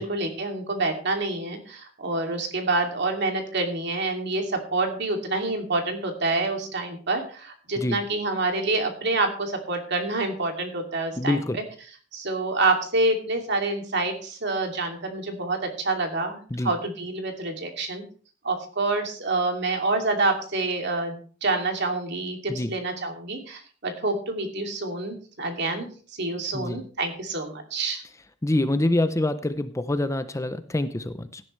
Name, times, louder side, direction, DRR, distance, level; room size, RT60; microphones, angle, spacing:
voice 1, 0.0-11.6 12.1-18.0 18.4-25.9 26.2-28.0, right 2 dB, 60° right, 4 dB, 2.6 m, -27 dB
voice 2, 11.2-11.6 16.5-16.7 22.5-22.7 26.5-26.8 28.4-31.4, left 1 dB, 15° left, 11 dB, 0.6 m, -26 dB
16.5 x 10.5 x 3.2 m, 0.41 s
head